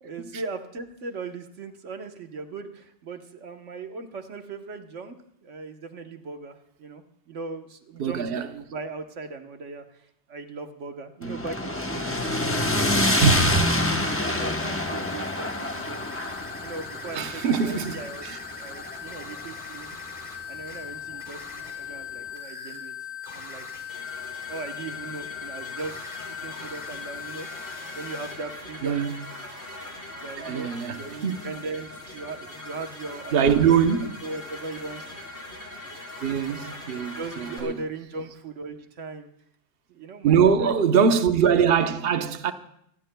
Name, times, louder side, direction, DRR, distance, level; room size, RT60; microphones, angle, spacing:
voice 1, 0.0-5.2 5.4-12.1 12.6-13.5 13.8-16.0 16.6-18.2 18.6-20.0 20.5-22.9 23.3-23.7 24.2-26.0 26.3-27.5 27.9-29.1 30.2-33.7 34.0-35.0 36.5-36.7 37.1-39.3 39.9-40.7, right 3 dB, 85° right, 1.4 m, -38 dB
voice 2, 8.0-8.5 11.2-11.3 13.2-13.7 17.1-18.4 28.8-29.2 30.4-31.5 33.3-34.1 36.2-37.7 40.2-42.5, right 7 dB, 55° right, 1.0 m, -23 dB
sound 1, 11.2-19.5, left 1 dB, 10° left, 0.9 m, -27 dB
sound 2, 12.5-28.4, left 7 dB, 45° left, 3.1 m, -39 dB
sound 3, 23.9-37.6, left 1 dB, 65° left, 4.8 m, -41 dB
26.0 x 19.0 x 2.2 m
omnidirectional pair, 1.2 m